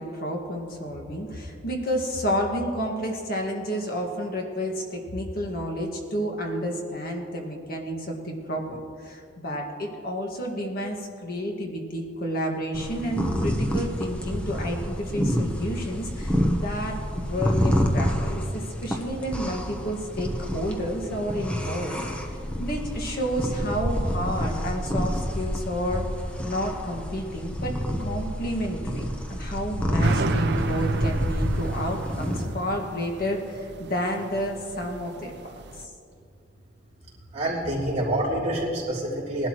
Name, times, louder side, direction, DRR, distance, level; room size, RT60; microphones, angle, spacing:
voice 1, 0.0-22.0 22.2-26.1 26.4-27.7 28.0-35.9, equal, 50° left, 0 dB, 1.8 m, -30 dB
sound 1, 12.7-32.4, equal, 5° left, 0.9 m, -28 dB
sound 2, 30.0-35.8, right 2 dB, 60° right, 0.6 m, -30 dB
voice 2, 37.3-39.5, right 1 dB, 35° right, -6 dB, 3.2 m, -27 dB
19.5 x 12.0 x 3.1 m, 2.3 s
head